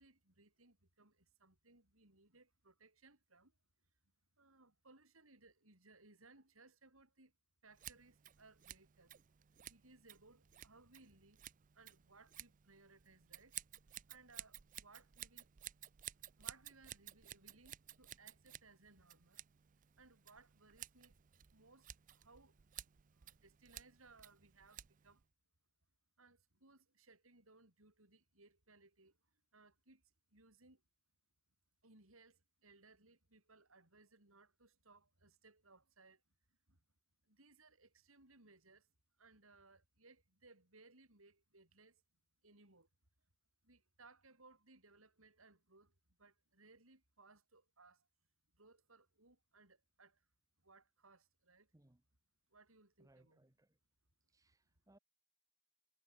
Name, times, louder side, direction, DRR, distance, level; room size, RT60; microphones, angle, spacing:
voice 1, 0.0-3.5 4.4-7.3 7.6-9.1 9.7-11.4 11.7-13.6 14.1-15.5 16.4-19.4 20.0-21.2 21.5-25.2 26.2-29.2 29.5-30.0 30.3-30.8 31.8-36.2 36.7-36.8 37.3-38.9 39.2-42.0 42.4-42.9 43.6-45.9 46.2-48.1 48.5-50.2 50.6-51.7 52.5-53.5, right 3 dB, 90° right, 6.3 m, -65 dB
Scissors, 7.7-25.2, right 12 dB, 40° right, 0.5 m, -55 dB
voice 2, 53.0-53.8 54.3-55.0, right 1 dB, 15° right, 1.0 m, -69 dB
head